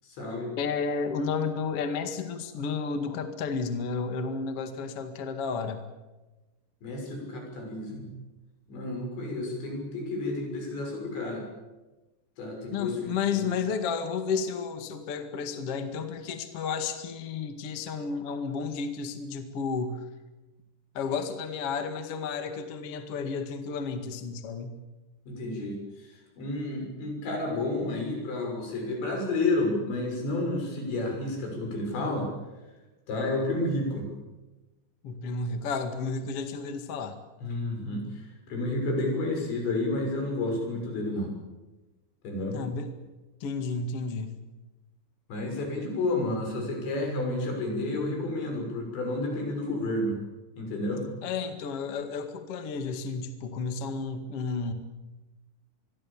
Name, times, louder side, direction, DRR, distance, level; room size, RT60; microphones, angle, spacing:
voice 1, 0.0-0.5 6.8-8.1 8.7-11.5 12.4-13.5 25.3-32.3 33.1-34.1 37.4-41.3 42.2-42.6 45.3-50.2 50.6-51.1, left 2 dB, 80° left, 2 dB, 8.7 m, -31 dB
voice 2, 0.6-5.8 12.7-20.1 20.9-24.8 35.0-37.2 42.5-42.9 43.4-44.3 51.2-54.7, left 5 dB, 45° left, 7 dB, 2.2 m, -32 dB
26.5 x 22.5 x 7.3 m, 1.1 s
omnidirectional pair, 5.1 m